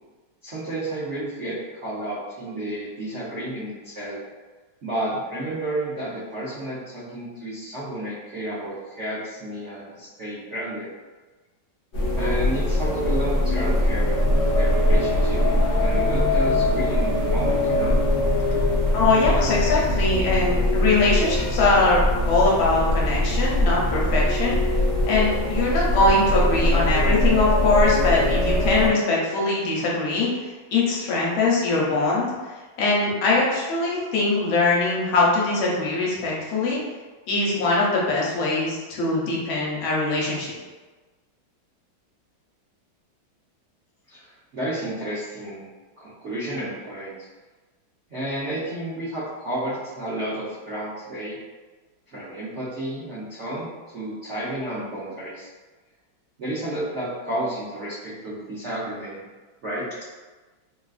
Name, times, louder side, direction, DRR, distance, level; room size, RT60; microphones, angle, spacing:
voice 1, 0.4-4.2 4.8-10.9 12.1-15.4 15.8-18.0 44.1-45.7 46.0-47.2 48.1-51.4 52.1-53.7 53.9-55.5 56.4-59.2 59.6-59.9, right 1 dB, 75° right, -10 dB, 0.6 m, -31 dB
sound 1, 11.9-28.9, left 1 dB, 50° left, 0.9 m, -22 dB
voice 2, 18.9-24.6 25.0-32.3 32.8-36.8 37.3-40.5, left 3 dB, 75° left, -4 dB, 1.5 m, -22 dB
3.7 x 2.4 x 2.3 m, 1.3 s
omnidirectional pair, 2.2 m